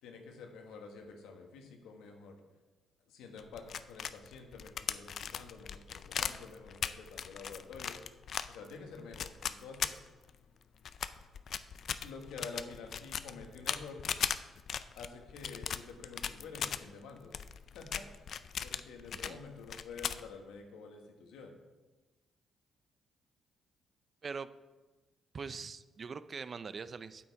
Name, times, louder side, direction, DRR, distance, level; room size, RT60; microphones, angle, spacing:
voice 1, 0.0-2.4 3.1-8.0 8.5-9.9 12.0-14.0 14.9-17.3 17.7-18.1 18.6-21.6, left 4 dB, 90° left, 3 dB, 1.4 m, -48 dB
sound 1, 3.4-10.4 10.8-16.8 17.2-19.4 19.6-20.3, left 8 dB, 60° left, 0.4 m, -38 dB
voice 2, 25.3-27.2, right 5 dB, 40° right, 14 dB, 0.4 m, -42 dB
8.5 x 8.0 x 4.7 m, 1.2 s
cardioid pair, 90°, 0 cm